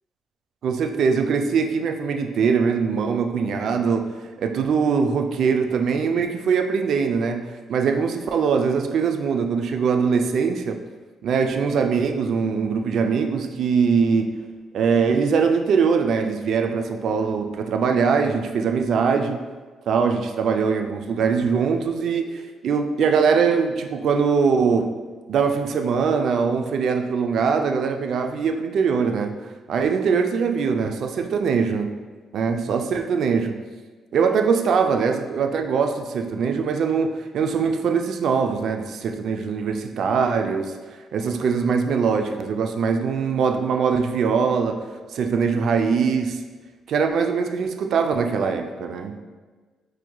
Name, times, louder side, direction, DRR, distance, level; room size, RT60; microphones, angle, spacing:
voice 1, 0.6-4.1 4.4-10.8 11.2-14.4 14.7-19.4 19.9-24.9 25.3-29.3 29.7-31.9 32.3-33.6 34.1-40.7 41.1-44.9 45.1-46.4 46.9-49.2, right 5 dB, 65° right, 6 dB, 0.3 m, -22 dB
4.5 x 3.0 x 2.2 m, 1.4 s
cardioid pair, 90°, 0 cm